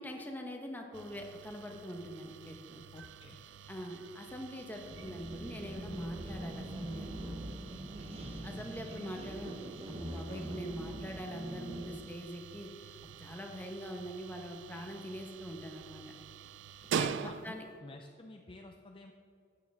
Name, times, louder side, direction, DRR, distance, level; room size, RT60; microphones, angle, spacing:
voice 1, 0.0-2.8 3.7-7.4 8.4-9.6 9.9-12.7 13.2-16.0 16.9-17.6, equal, 10° left, 2 dB, 1.0 m, -43 dB
sound 1, 0.9-17.8, right 7 dB, 75° right, 0.3 m, -45 dB
voice 2, 2.9-3.4 17.1-19.1, left 2 dB, 30° left, 3 dB, 0.5 m, -50 dB
sound 2, 4.9-12.1, right 1 dB, 35° right, 1.1 m, -43 dB
12.5 x 8.7 x 3.6 m, 2.4 s
head